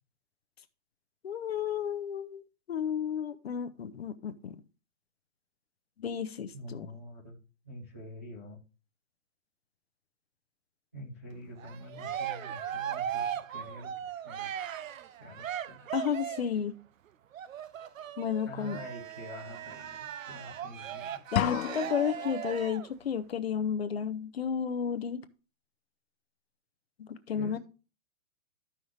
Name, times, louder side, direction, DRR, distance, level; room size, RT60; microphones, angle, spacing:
voice 1, 1.2-2.4 2.7-4.6 6.0-6.9 15.9-16.7 18.2-18.8 21.3-25.2 27.0-27.6, left 8 dB, 50° left, 11 dB, 0.7 m, -32 dB
voice 2, 6.5-7.4 7.6-8.6 10.9-14.6 15.2-15.9 18.4-21.2 27.3-27.6, equal, 10° right, -8 dB, 0.5 m, -46 dB
Cheering, 11.6-16.6 17.3-22.9, right 9 dB, 75° right, 0.7 m, -38 dB
sound 1, 21.4-22.3, left 12 dB, 90° left, 0.6 m, -31 dB
13.0 x 5.7 x 3.2 m, 0.35 s
hypercardioid pair, 180°, 40 cm